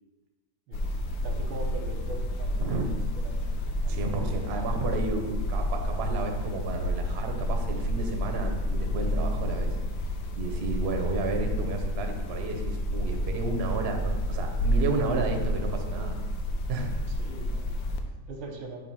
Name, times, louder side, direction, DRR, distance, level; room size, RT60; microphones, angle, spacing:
sound 1, 0.7-18.0, equal, 70° left, 0.9 m, -30 dB
voice 1, 1.2-4.6 17.1-18.8, right 2 dB, 90° right, 3 dB, 1.6 m, -42 dB
voice 2, 3.9-9.7 10.4-16.2 16.7-17.0, right 3 dB, 65° right, 3 dB, 0.6 m, -32 dB
6.6 x 2.7 x 5.5 m, 1.2 s
omnidirectional pair, 2.1 m